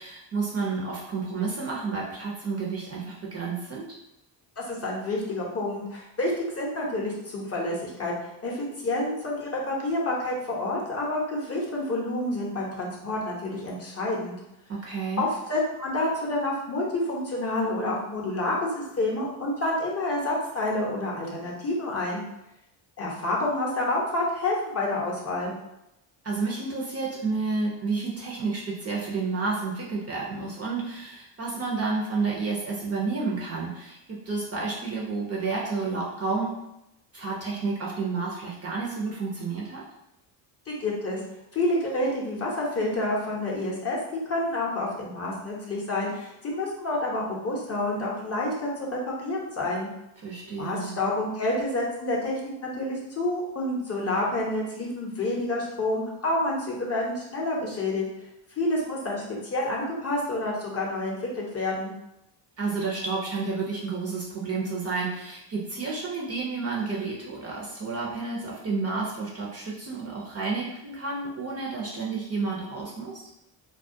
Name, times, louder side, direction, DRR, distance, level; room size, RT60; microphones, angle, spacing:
voice 1, 0.0-4.0 14.7-15.3 26.2-36.5 37.1-39.8 50.2-51.0 62.6-73.2, right 4 dB, 30° right, -3 dB, 0.5 m, -30 dB
voice 2, 4.6-8.1 8.4-14.4 15.2-22.2 23.0-25.5 40.7-41.2 41.5-44.0 44.3-49.9 50.6-58.1 58.6-61.9, left 1 dB, 30° left, -3 dB, 0.6 m, -28 dB
2.3 x 2.1 x 2.5 m, 0.86 s
cardioid pair, 100°, 49 cm